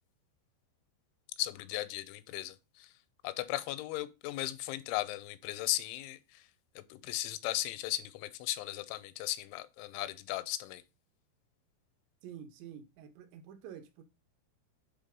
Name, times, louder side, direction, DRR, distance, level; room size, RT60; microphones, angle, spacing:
voice 1, 1.4-2.9 3.2-6.2 6.8-10.8, left 16 dB, 90° left, 3.1 m, -36 dB
voice 2, 12.2-14.0, right 9 dB, 80° right, 3.3 m, -48 dB
9.0 x 4.1 x 5.2 m
omnidirectional pair, 5.3 m